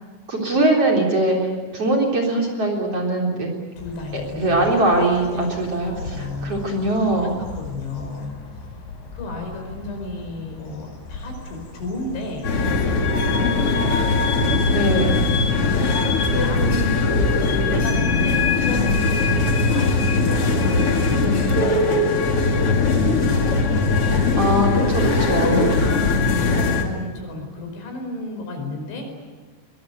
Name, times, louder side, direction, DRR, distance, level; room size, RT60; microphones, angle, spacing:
voice 1, 0.3-3.5 4.1-5.9 6.4-7.4 14.7-15.2 24.4-26.0, right 2 dB, 35° right, 0 dB, 4.3 m, -21 dB
voice 2, 3.8-4.7 5.2-5.5 5.9-6.5 7.2-8.3 9.1-13.5 14.5-16.9 17.7-19.1 19.7-24.3 25.3-26.0 26.4-29.1, left 3 dB, 80° left, 4 dB, 7.4 m, -33 dB
sound 1, 3.8-17.4, left 3 dB, 65° left, 6.7 m, -35 dB
sound 2, 12.4-26.8, left 3 dB, 40° left, 2.5 m, -20 dB
22.5 x 22.5 x 9.3 m, 1.4 s
omnidirectional pair, 5.2 m